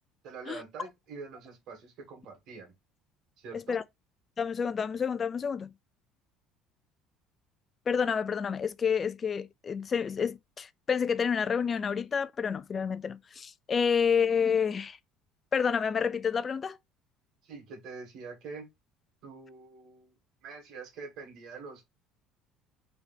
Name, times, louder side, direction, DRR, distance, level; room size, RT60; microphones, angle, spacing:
voice 1, 0.2-2.7 3.4-3.8 17.4-18.7 19.2-20.1 20.4-21.8, right 4 dB, 60° right, 1.7 m, -45 dB
voice 2, 4.4-5.7 7.9-15.0 15.5-16.8, left 6 dB, 30° left, 0.3 m, -29 dB
3.4 x 2.7 x 4.0 m
cardioid pair, 125°, 0 cm